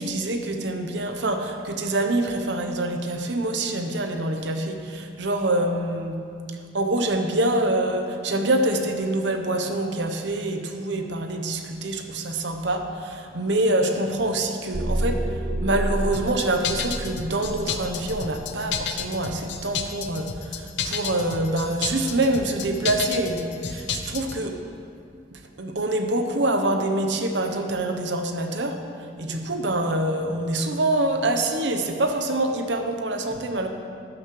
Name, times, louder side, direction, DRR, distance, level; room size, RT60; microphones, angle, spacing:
voice 1, 0.0-6.2 6.7-15.3 15.6-24.6 25.3-28.8 29.2-33.7, right 1 dB, 75° right, 5 dB, 0.9 m, -25 dB
sound 1, 14.7-19.7, right 1 dB, 20° right, 0.4 m, -30 dB
sound 2, 16.1-24.4, left 6 dB, 70° left, 0.7 m, -31 dB
12.5 x 9.5 x 3.2 m, 2.4 s
head